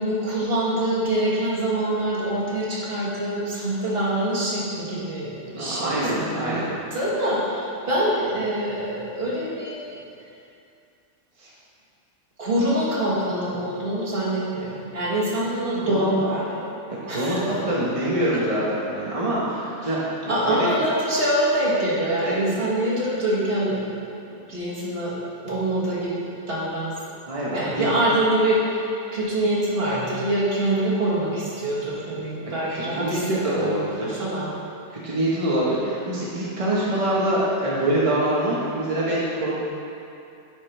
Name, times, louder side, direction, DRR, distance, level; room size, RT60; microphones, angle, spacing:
voice 1, 0.0-9.9 12.4-16.6 17.1-17.6 18.3-18.4 19.8-20.0 20.3-23.8 24.3-25.2 25.4-26.9 27.5-28.8 29.1-34.5, right 1 dB, 45° right, -7 dB, 1.7 m, -25 dB
voice 2, 5.5-6.7 11.4-11.5 15.9-16.1 17.0-20.1 20.5-20.7 22.2-22.6 27.3-27.9 32.7-34.2 34.9-39.5, right 1 dB, 25° right, -7 dB, 1.0 m, -25 dB
10.5 x 5.0 x 3.3 m, 2.6 s
omnidirectional pair, 1.5 m